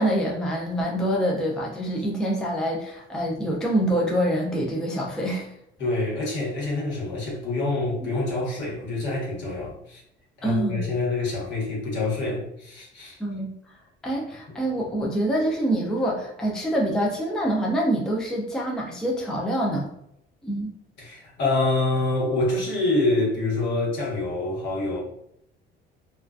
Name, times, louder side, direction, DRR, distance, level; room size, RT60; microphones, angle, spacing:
voice 1, 0.0-5.5 10.4-10.8 13.2-13.5 14.0-19.9 20.4-20.7, right 1 dB, 5° left, -2 dB, 0.3 m, -25 dB
voice 2, 5.8-10.0 10.4-13.2 21.0-25.0, left 2 dB, 70° left, -3 dB, 1.1 m, -26 dB
2.3 x 2.3 x 2.3 m, 0.76 s
cardioid pair, 155°, 19 cm